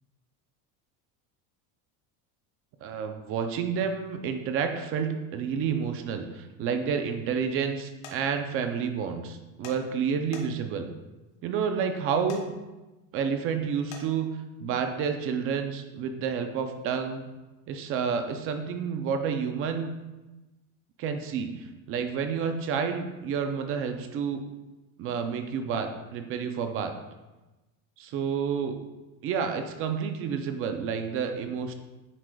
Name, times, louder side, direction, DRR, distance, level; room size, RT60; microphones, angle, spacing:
voice 1, 2.8-10.9 11.4-12.5 13.1-14.3 14.6-17.3 17.7-19.9 21.0-21.5 21.9-24.4 25.0-26.9 28.0-28.8 29.2-31.7, right 6 dB, 35° right, 7 dB, 0.4 m, -29 dB
sound 1, 8.0-8.2 9.6-9.8 10.3-10.8 12.3-12.4 13.9-14.1, left 4 dB, 85° left, 1.3 m, -43 dB
9.8 x 4.8 x 2.2 m, 1.1 s
cardioid pair, 170°, 40 cm